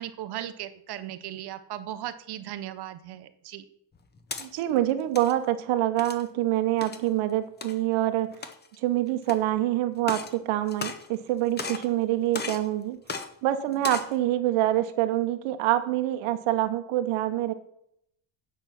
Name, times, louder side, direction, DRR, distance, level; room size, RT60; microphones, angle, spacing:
voice 1, 0.0-3.6, right 12 dB, 55° right, 12 dB, 0.7 m, -37 dB
sound 1, 3.9-4.5 5.0-5.3 6.0-6.3 6.8-7.0 7.6-7.7 8.3-8.8 9.3-9.4 10.0-10.3 10.7-11.3 11.6-11.9 12.3-12.7 13.1-13.3 13.7-14.1, left 4 dB, 20° left, 0.7 m, -35 dB
voice 2, 4.4-8.5 8.8-13.0 13.4-17.5, right 14 dB, 85° right, 8 dB, 0.9 m, -26 dB
9.1 x 6.1 x 5.8 m, 0.73 s
cardioid pair, 160°, 48 cm